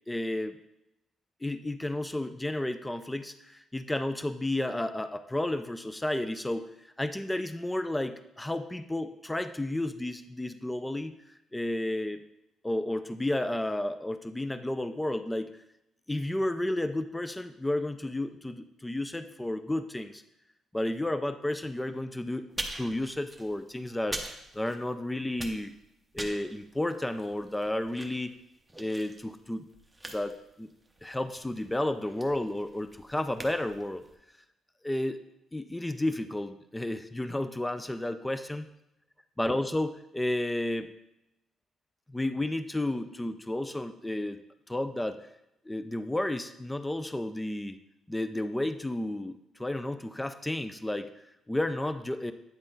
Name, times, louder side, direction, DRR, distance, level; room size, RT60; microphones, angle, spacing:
voice 1, 0.1-0.6 1.4-12.2 12.6-15.6 16.1-20.2 20.7-22.5 22.7-25.7 26.1-28.3 28.8-29.7 30.1-30.7 31.0-34.0 34.8-35.2 35.5-38.7 39.4-40.9 42.1-44.4 44.7-45.3 45.7-47.8 48.1-52.3, left 1 dB, 10° left, 11 dB, 0.3 m, -32 dB
sound 1, 22.5-25.0 25.3-34.1, right 1 dB, 10° right, 0.8 m, -43 dB
8.8 x 3.8 x 3.9 m, 0.87 s
cardioid pair, 90°, 0 cm